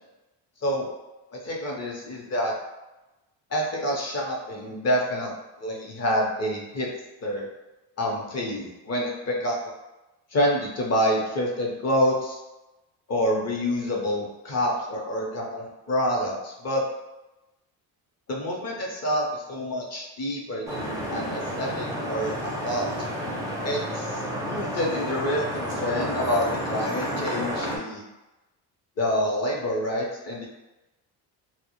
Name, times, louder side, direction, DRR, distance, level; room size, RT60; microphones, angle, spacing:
voice 1, 1.3-2.5 3.5-6.9 7.2-7.5 8.0-9.6 10.3-12.4 13.1-16.8 18.3-22.9 23.6-28.1 29.0-30.5, equal, 35° left, -2 dB, 0.6 m, -27 dB
Vehicle horn car horn honking / Traffic noise roadway noise, 20.7-27.8, equal, 10° right, 0.4 m, -31 dB
2.1 x 2.0 x 2.9 m, 1.0 s
cardioid pair, 90°, 48 cm